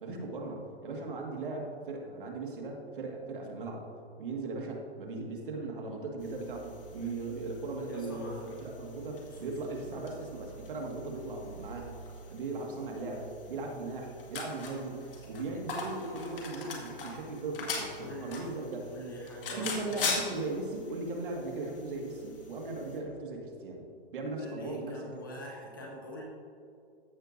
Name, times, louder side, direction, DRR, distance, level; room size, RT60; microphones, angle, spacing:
voice 1, 0.0-3.9 4.2-12.0 12.3-18.9 19.5-23.8 24.1-25.0, right 2 dB, 50° right, 0 dB, 1.9 m, -38 dB
sound 1, 6.2-23.0, left 3 dB, 55° left, 1.9 m, -42 dB
voice 2, 7.9-8.9 9.3-9.5 18.0-18.6 18.8-20.0 24.2-26.2, left 1 dB, 20° left, -2 dB, 0.6 m, -44 dB
15.0 x 6.5 x 2.7 m, 2.5 s
hypercardioid pair, 175°, 32 cm